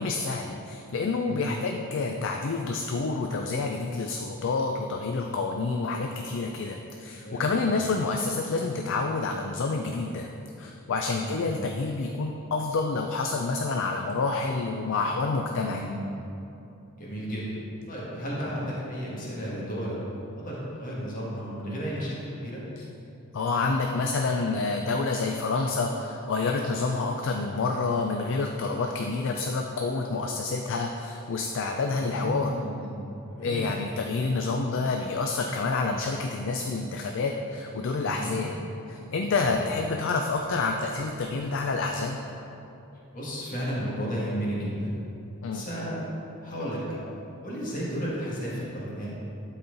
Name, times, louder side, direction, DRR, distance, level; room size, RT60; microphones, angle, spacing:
voice 1, 0.0-10.3 10.6-15.8 23.3-32.5 33.4-38.5 38.9-42.2 45.4-45.6, left 3 dB, 55° left, 3 dB, 0.4 m, -28 dB
voice 2, 1.2-1.5 7.2-7.6 11.1-11.4 15.5-16.0 16.9-17.6 17.9-20.0 20.3-22.6 31.9-33.0 33.3-33.8 38.0-38.4 39.4-39.6 43.1-44.9 45.5-46.0 46.4-47.0 47.4-49.1, equal, 35° left, -6 dB, 1.6 m, -33 dB
11.5 x 4.3 x 3.9 m, 2.9 s
head